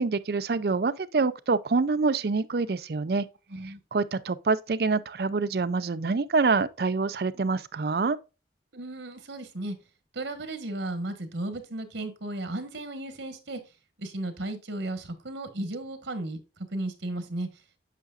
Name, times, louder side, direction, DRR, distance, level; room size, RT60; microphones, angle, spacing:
voice 1, 0.0-3.3 3.6-8.2, right 4 dB, 55° right, 0.4 m, -26 dB
voice 2, 8.7-9.7 10.1-13.6 14.0-16.4 16.7-17.5, right 2 dB, 90° right, 1.4 m, -34 dB
8.3 x 5.8 x 2.5 m
head